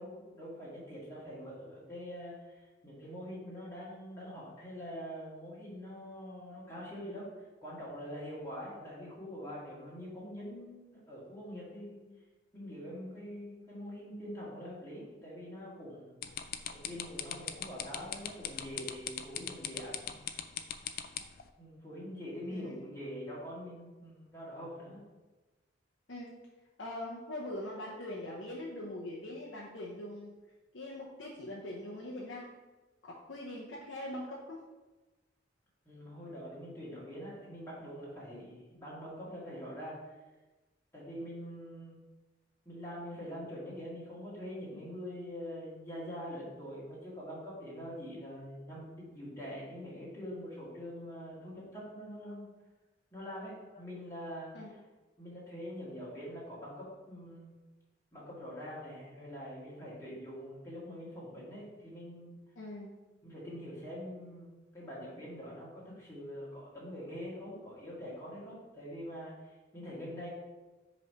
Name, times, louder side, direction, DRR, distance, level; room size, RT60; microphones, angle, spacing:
voice 1, 0.0-7.3 7.6-12.0 12.5-16.2 16.6-20.2 21.6-25.0 35.9-40.1 40.9-42.0 42.7-52.5 53.1-54.8 55.2-57.5 58.1-62.4 63.2-70.3, equal, 15° left, -7 dB, 1.8 m, -44 dB
sound 1, 16.2-21.4, left 9 dB, 50° left, 0.3 m, -38 dB
voice 2, 22.5-22.8 26.1-26.4 26.8-30.4 30.7-32.5 33.0-34.6 52.3-52.4 54.5-54.8 62.6-62.9, left 1 dB, 85° left, -3 dB, 0.8 m, -42 dB
5.5 x 3.2 x 5.4 m, 1.2 s
head